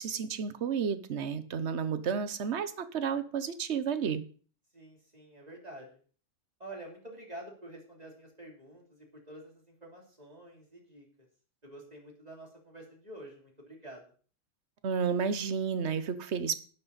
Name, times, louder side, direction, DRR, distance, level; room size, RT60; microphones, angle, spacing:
voice 1, 0.0-4.2 14.8-16.6, right 6 dB, 50° right, 12 dB, 1.0 m, -31 dB
voice 2, 4.7-6.0 6.6-11.1 11.6-14.1, right 1 dB, 25° right, -1 dB, 3.3 m, -48 dB
11.5 x 10.5 x 4.1 m, 0.41 s
omnidirectional pair, 1.8 m